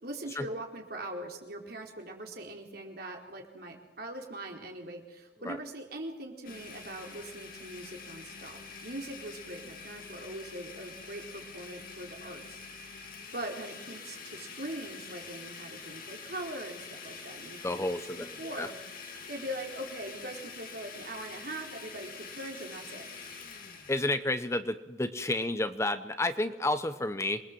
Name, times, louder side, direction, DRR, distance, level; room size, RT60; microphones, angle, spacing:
voice 1, 0.0-17.9 18.2-18.8 19.1-23.1, right 1 dB, 55° right, 1 dB, 4.4 m, -42 dB
Domestic sounds home sounds, 6.4-24.1, left 5 dB, 50° left, 3.1 m, -46 dB
voice 2, 17.6-18.7 23.9-27.4, left 2 dB, 15° left, 10 dB, 0.9 m, -31 dB
27.0 x 21.5 x 7.6 m, 1.1 s
head